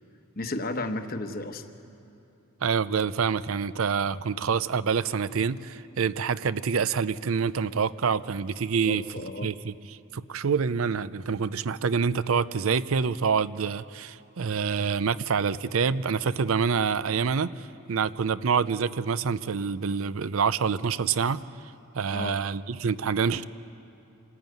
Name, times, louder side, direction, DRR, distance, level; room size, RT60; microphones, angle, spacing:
voice 1, 0.4-1.6 8.8-9.5 22.1-22.4, left 2 dB, 45° left, 7 dB, 1.1 m, -33 dB
voice 2, 2.6-9.0 9.4-9.7 10.1-21.4 21.9-23.4, right 6 dB, 80° right, 16 dB, 0.5 m, -26 dB
26.5 x 14.5 x 9.2 m, 2.8 s
head